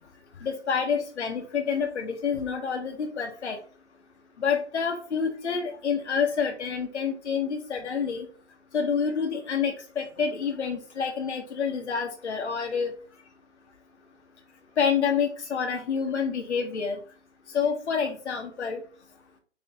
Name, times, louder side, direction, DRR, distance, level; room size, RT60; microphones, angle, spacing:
voice 1, 0.4-3.6 4.4-8.3 8.7-12.9 14.8-17.0 17.5-18.8, left 6 dB, 70° left, 3 dB, 1.1 m, -28 dB
4.4 x 3.1 x 3.6 m, 0.40 s
hypercardioid pair, 145°, 36 cm